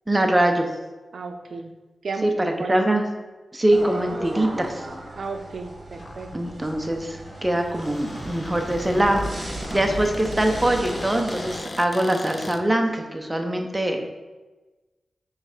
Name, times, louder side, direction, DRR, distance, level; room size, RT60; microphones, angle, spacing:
voice 1, 0.1-0.7 2.2-3.0 3.5-4.8 6.3-14.0, right 1 dB, 15° right, 4 dB, 0.7 m, -23 dB
voice 2, 1.1-1.7 2.0-3.0 5.1-6.3, right 4 dB, 65° right, 6 dB, 0.5 m, -33 dB
sound 1, 3.7-11.6, right 1 dB, 35° right, 1.2 m, -35 dB
Cupboard open or close, 5.9-12.6, left 2 dB, 35° left, 0.4 m, -39 dB
6.3 x 3.2 x 4.9 m, 1.2 s
wide cardioid pair, 130°, 0 cm